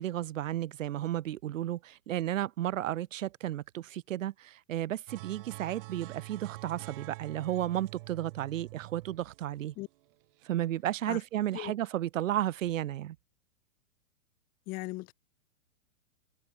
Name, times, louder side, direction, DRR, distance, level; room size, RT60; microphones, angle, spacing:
voice 1, 0.0-9.7 10.4-13.2, right 12 dB, 70° right, 1.3 m, -33 dB
sound 1, 5.1-10.4, right 23 dB, 45° right, 0.9 m, -46 dB
voice 2, 14.7-15.1, left 22 dB, 20° left, 0.5 m, -38 dB
hypercardioid pair, 135°, 40 cm